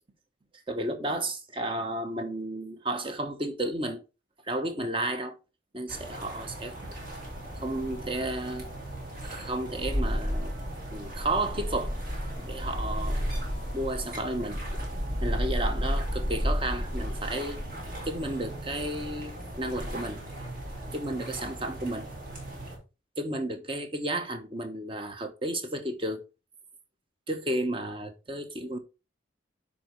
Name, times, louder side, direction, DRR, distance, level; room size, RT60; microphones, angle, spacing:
voice 1, 0.7-4.0 4.5-5.4 5.7-6.8 7.6-8.7 9.2-10.5 10.9-12.0 12.4-13.2 13.7-14.6 15.2-17.6 18.0-20.2 20.9-22.1 23.2-26.2 27.3-28.8, right 1 dB, 25° right, 1.0 m, -32 dB
sound 1, 5.9-22.8, equal, 45° right, 3.4 m, -34 dB
10.0 x 4.1 x 4.5 m
head